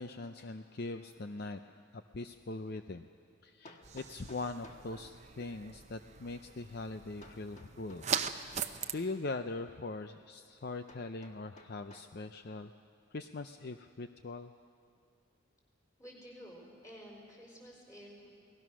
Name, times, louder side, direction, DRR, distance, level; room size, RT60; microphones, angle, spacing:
voice 1, 0.0-3.1 3.4-8.1 8.6-12.7 13.1-14.5, left 3 dB, 50° left, 8 dB, 0.5 m, -41 dB
Hammer, 3.6-4.9 7.2-8.5 10.9-12.2, left 1 dB, 35° left, 1.4 m, -56 dB
sound 1, 3.8-8.9, right 7 dB, 35° right, 0.7 m, -40 dB
voice 2, 16.0-18.3, equal, 15° left, -1 dB, 4.6 m, -51 dB
28.5 x 19.0 x 6.2 m, 2.3 s
head